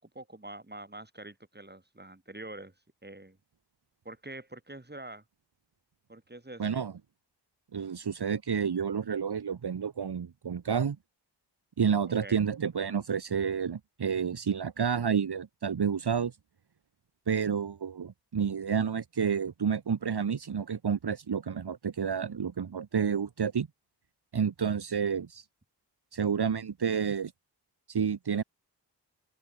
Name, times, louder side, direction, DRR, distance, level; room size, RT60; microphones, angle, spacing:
voice 1, 0.0-2.7 3.0-3.4 4.0-5.2 6.1-6.8 12.2-12.4, right 2 dB, 25° right, 5.9 m, -45 dB
voice 2, 6.6-6.9 7.7-11.0 11.8-16.3 17.3-23.7 24.3-25.4 26.1-27.3 27.9-28.4, right 7 dB, 65° right, 1.3 m, -30 dB
open air
wide cardioid pair, 55°, 42 cm